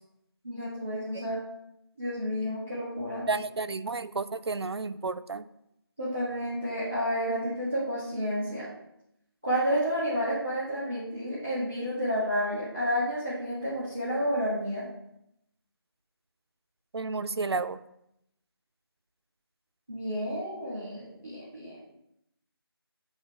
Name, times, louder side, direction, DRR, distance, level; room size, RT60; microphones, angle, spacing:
voice 1, 0.4-1.4 2.0-3.3 6.0-8.7 9.4-14.9 19.9-21.8, equal, 5° left, -9 dB, 0.5 m, -30 dB
voice 2, 3.3-5.4 16.9-17.8, right 3 dB, 80° right, 13 dB, 0.4 m, -31 dB
8.0 x 2.7 x 4.6 m, 0.81 s
figure-of-eight pair, 175°, 13 cm